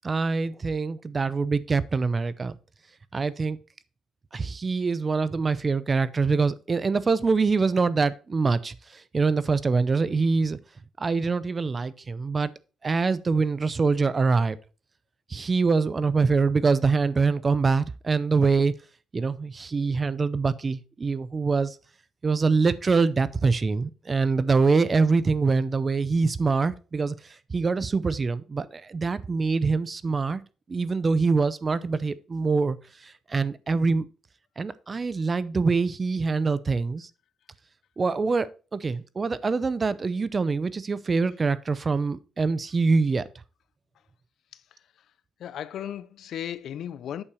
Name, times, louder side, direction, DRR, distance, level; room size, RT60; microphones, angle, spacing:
voice 1, 0.0-2.5 3.1-3.6 4.3-10.6 11.0-12.5 12.8-14.6 15.3-18.7 19.1-21.8 22.2-27.2 27.5-30.4 30.7-32.8 33.0-34.1 34.6-37.1 38.0-43.3, right 4 dB, 35° right, 0.6 m, -24 dB
voice 2, 44.5-45.1 45.4-47.2, left 10 dB, 70° left, 0.6 m, -36 dB
8.8 x 6.6 x 4.3 m
cardioid pair, 90°, 0 cm